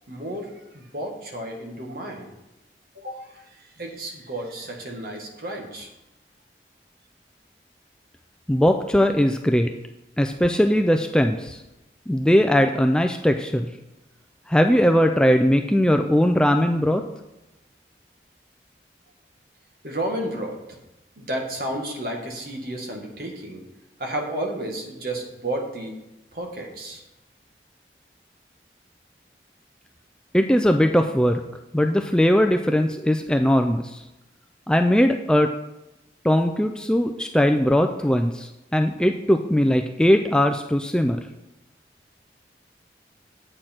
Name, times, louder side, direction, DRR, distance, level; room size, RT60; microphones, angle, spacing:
voice 1, 0.1-2.3 2.9-3.2 3.8-5.9 19.8-20.6 21.2-23.6 24.0-25.9 26.3-27.0, right 1 dB, 55° right, 1 dB, 1.7 m, -32 dB
voice 2, 8.5-9.7 10.2-11.6 12.1-13.7 14.5-17.0 30.3-31.4 31.7-34.0 34.7-35.5 36.2-41.2, equal, 5° left, 5 dB, 0.3 m, -20 dB
8.3 x 7.6 x 4.4 m, 0.95 s
head